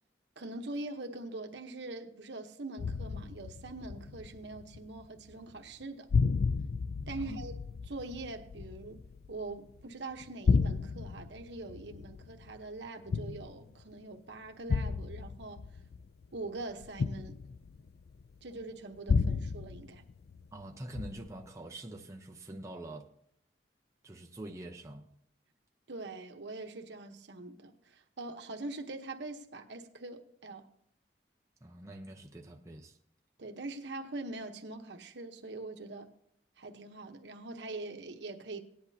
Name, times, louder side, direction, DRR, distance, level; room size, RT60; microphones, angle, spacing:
voice 1, 0.4-6.1 7.1-7.5 7.9-15.6 16.3-17.4 18.4-20.0 25.9-30.7 33.4-36.1 36.6-38.6, right 2 dB, 75° right, 1.0 m, -43 dB
sound 1, 2.8-5.0 5.3-5.8 6.1-9.8 10.2-13.8 14.7-18.2 19.1-20.6 20.9-21.5, left 5 dB, 55° left, 0.3 m, -33 dB
voice 2, 20.5-23.1 24.0-25.1 31.6-33.0, right 1 dB, 15° right, 0.7 m, -45 dB
18.0 x 10.5 x 2.8 m
head